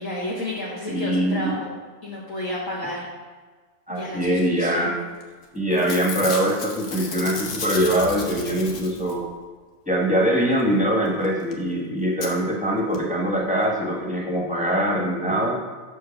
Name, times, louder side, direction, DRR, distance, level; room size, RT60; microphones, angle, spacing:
voice 1, 0.0-1.7 2.0-3.1 3.9-4.9, left 1 dB, 60° left, -6 dB, 1.6 m, -31 dB
voice 2, 0.9-1.6 3.9-5.0 5.5-9.3 9.9-15.6, right 1 dB, 5° right, -3 dB, 1.0 m, -23 dB
Packing tape duct tape / Tearing, 5.2-5.5 5.7-9.3 11.2-11.3 11.5-11.6 12.2-12.3 12.9-13.0 13.3-13.4, left 4 dB, 85° left, 1.4 m, -33 dB
6.5 x 4.6 x 5.8 m, 1.4 s
omnidirectional pair, 1.6 m